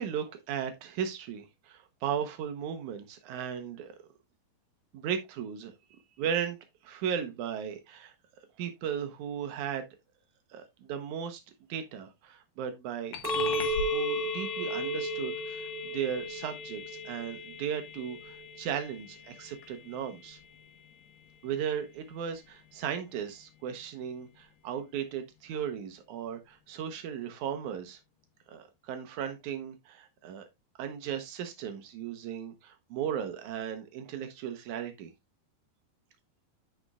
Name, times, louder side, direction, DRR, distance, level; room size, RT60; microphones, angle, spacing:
voice 1, 0.0-3.9 4.9-6.6 6.8-8.1 8.6-9.8 10.5-11.4 11.7-20.4 21.4-28.0 28.5-30.5 30.8-35.1, right 8 dB, 90° right, 1.7 m, -36 dB
sound 1, 13.1-23.0, left 7 dB, 85° left, 3.2 m, -41 dB
Chink clink, 13.2-17.5 18.0-18.6, right 1 dB, 20° right, 1.5 m, -34 dB
14.0 x 5.1 x 2.3 m
omnidirectional pair, 4.7 m